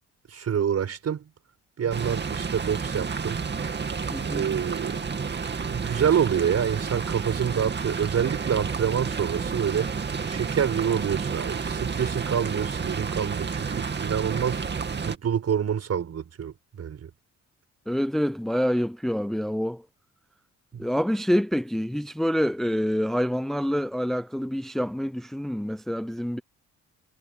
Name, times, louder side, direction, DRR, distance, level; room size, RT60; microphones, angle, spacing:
voice 1, 0.3-1.3 1.8-3.4 4.3-5.0 5.7-9.9 10.3-14.8 15.1-17.1 20.7-20.9, right 8 dB, 55° right, 7.0 m, -27 dB
sound 1, 1.9-15.2, right 5 dB, 35° right, 2.4 m, -30 dB
voice 2, 4.1-4.5 17.9-19.8 20.8-26.4, equal, ahead, 0.7 m, -26 dB
cardioid pair, 90°, 30 cm